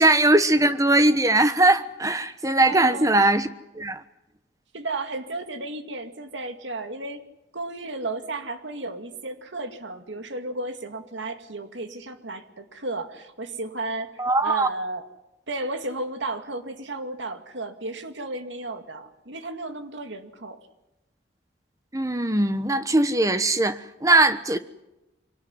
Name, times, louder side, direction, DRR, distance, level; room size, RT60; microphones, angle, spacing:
voice 1, 0.0-3.5 3.7-4.0 14.2-14.7 21.9-24.6, right 2 dB, 15° right, 1.1 m, -20 dB
voice 2, 2.6-3.1 4.7-7.2 7.5-15.1 15.5-20.6, right 2 dB, 85° right, 2.3 m, -33 dB
25.5 x 18.5 x 9.7 m
head